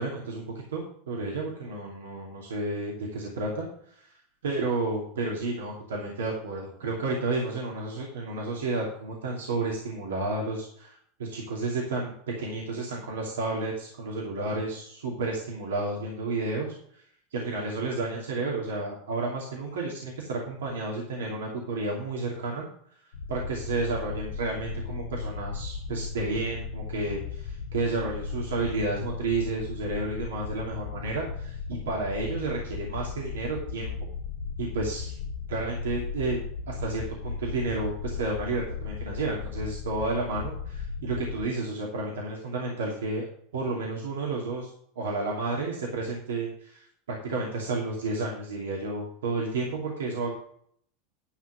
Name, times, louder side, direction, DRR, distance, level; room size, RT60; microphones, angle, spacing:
voice 1, 0.0-4.2 4.4-17.0 17.3-22.7 23.3-33.9 34.6-35.2 35.5-36.4 36.7-43.2 43.5-44.7 45.0-50.3, right 3 dB, 85° right, -2 dB, 2.6 m, -31 dB
sound 1, 23.1-41.4, left 5 dB, 80° left, 0.8 m, -36 dB
11.5 x 6.2 x 5.9 m, 0.63 s
hypercardioid pair, 95°, 0 cm